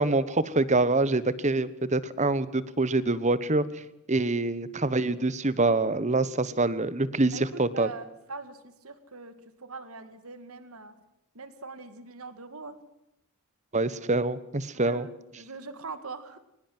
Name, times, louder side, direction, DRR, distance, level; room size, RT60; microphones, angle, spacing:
voice 1, 0.0-3.6 4.1-7.9 13.7-15.1, right 2 dB, 30° right, 16 dB, 1.2 m, -25 dB
voice 2, 7.3-11.0 11.3-12.8 14.7-16.4, right 4 dB, 75° right, 12 dB, 2.0 m, -42 dB
23.5 x 20.0 x 7.8 m, 0.82 s
head